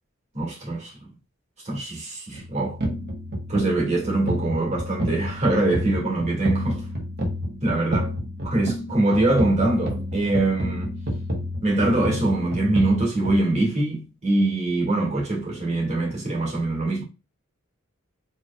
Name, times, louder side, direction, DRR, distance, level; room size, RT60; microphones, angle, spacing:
voice 1, 0.3-0.9 1.6-2.8 3.5-6.8 7.6-8.1 8.4-10.9 11.6-17.0, right 2 dB, 35° right, 2.3 m, -23 dB
sound 1, 2.3-13.4, equal, 50° right, 1.4 m, -29 dB
4.9 x 3.4 x 2.4 m
head